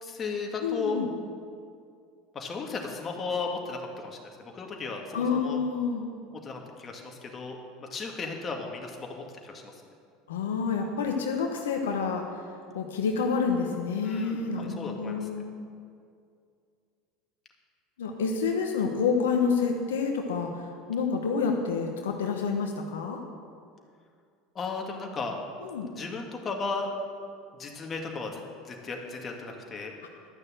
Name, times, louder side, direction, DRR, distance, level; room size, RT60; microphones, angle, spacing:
voice 1, 0.0-1.0 2.3-5.6 6.4-9.6 14.0-15.3 24.6-25.4 25.9-26.9 27.6-29.9, left 4 dB, 30° left, 1 dB, 2.0 m, -35 dB
voice 2, 0.6-1.1 5.1-6.0 10.3-12.4 12.7-15.4 18.0-23.2 25.6-25.9, left 5 dB, 85° left, 2 dB, 1.0 m, -28 dB
12.0 x 6.6 x 7.7 m, 2.3 s
hypercardioid pair, 85°, 0 cm